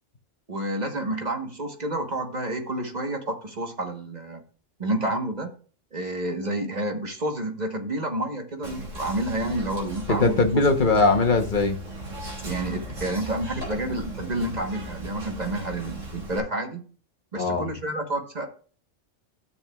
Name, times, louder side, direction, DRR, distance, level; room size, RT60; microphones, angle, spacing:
voice 1, 0.5-4.4 4.8-5.5 5.9-10.4 12.4-16.8 17.3-18.5, right 1 dB, 35° right, 1.3 m, -29 dB
Whispering, 8.6-16.4, right 1 dB, 85° right, 3.3 m, -37 dB
voice 2, 10.1-11.8 17.4-17.7, left 3 dB, 45° left, 1.1 m, -20 dB
13.0 x 6.9 x 2.3 m
omnidirectional pair, 1.3 m